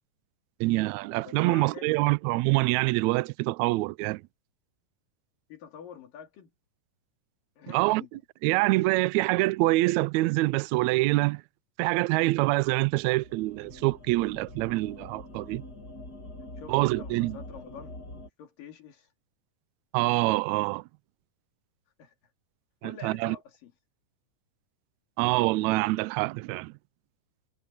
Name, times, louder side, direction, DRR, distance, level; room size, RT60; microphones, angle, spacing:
voice 1, 0.6-4.2 7.7-8.0 8.4-11.4 11.8-15.6 16.7-17.4 19.9-20.8 22.8-23.4 25.2-26.7, right 21 dB, 90° right, 1.6 m, -25 dB
voice 2, 1.3-2.2 5.5-6.5 7.6-8.1 16.6-18.0 18.4-19.1 22.0-22.1 22.8-23.7, left 7 dB, 90° left, 4.3 m, -46 dB
sound 1, 12.4-18.3, left 1 dB, 30° left, 2.9 m, -45 dB
omnidirectional pair, 3.8 m